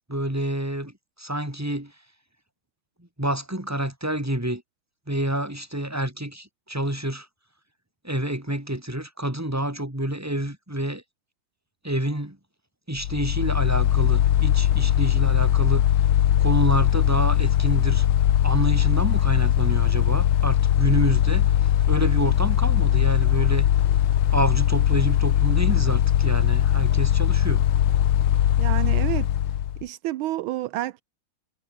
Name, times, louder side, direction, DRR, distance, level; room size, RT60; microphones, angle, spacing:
voice 1, 0.1-1.9 3.2-4.6 5.1-7.3 8.0-11.0 11.8-12.4 12.9-15.9 16.4-18.1 18.4-23.7 24.3-27.6, right 1 dB, 5° right, 4.1 m, -28 dB
Mechanical fan, 13.0-29.8, left 11 dB, 90° left, 2.0 m, -20 dB
voice 2, 28.6-29.3 29.8-31.0, right 15 dB, 80° right, 1.5 m, -29 dB
omnidirectional pair, 2.3 m